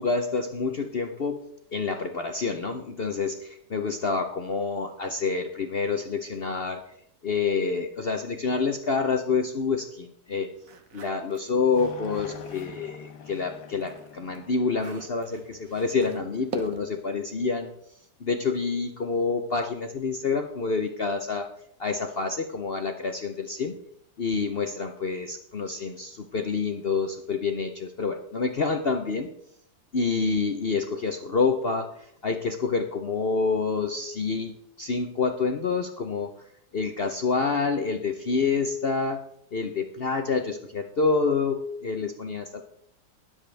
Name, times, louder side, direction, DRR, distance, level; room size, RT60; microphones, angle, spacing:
voice 1, 0.0-6.8 7.2-10.5 10.9-17.7 18.2-21.5 21.8-23.7 24.2-29.3 29.9-36.3 36.7-39.2 39.5-42.6, left 4 dB, 70° left, 5 dB, 0.5 m, -27 dB
sound 1, 10.6-12.8 13.3-17.1, right 5 dB, 50° right, 1.3 m, -43 dB
sound 2, 11.8-16.1, left 7 dB, 85° left, 1.8 m, -45 dB
20.5 x 7.8 x 3.4 m, 0.69 s
omnidirectional pair, 2.1 m